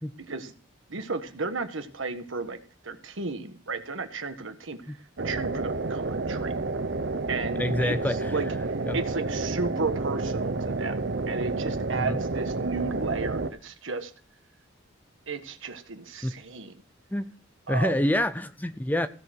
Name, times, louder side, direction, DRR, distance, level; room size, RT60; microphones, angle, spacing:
voice 1, 0.2-0.5 0.9-2.6 2.8-4.8 5.2-6.5 7.3-7.9 8.3-11.0 11.3-14.1 15.3-16.7 17.7-18.0, right 4 dB, 75° right, 1.5 m, -34 dB
sound 1, 5.2-13.5, right 3 dB, 55° right, 0.8 m, -30 dB
voice 2, 7.6-8.3 8.9-9.0 12.0-12.2 16.2-16.3 17.1-17.3 17.7-19.1, left 1 dB, 10° left, 0.5 m, -27 dB
16.0 x 7.1 x 6.0 m
head